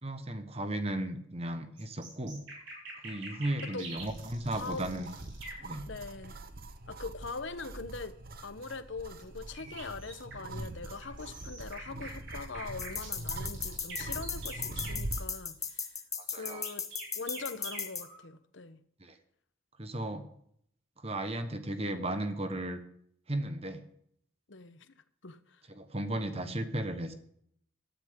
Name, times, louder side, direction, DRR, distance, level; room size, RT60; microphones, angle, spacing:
voice 1, 0.0-2.4 3.0-5.1 5.6-5.9 16.3-16.6 19.0-19.2 19.8-20.3 21.0-22.8 23.3-23.8 25.7-27.1, right 1 dB, 30° right, 1.3 m, -35 dB
sound 1, 1.8-5.7 9.5-10.5 11.0-15.0 16.4-18.2, right 2 dB, 65° right, 6.6 m, -45 dB
voice 2, 3.5-3.8 4.5-4.8 5.9-6.4 6.9-8.2 8.4-16.0 16.3-16.9 17.2-18.8 24.5-24.9 25.2-25.6, left 3 dB, 65° left, 1.0 m, -42 dB
sound 2, 4.0-15.3, right 2 dB, 45° right, 1.0 m, -43 dB
sound 3, 12.8-18.0, left 6 dB, 15° left, 1.0 m, -36 dB
17.5 x 13.5 x 3.8 m
head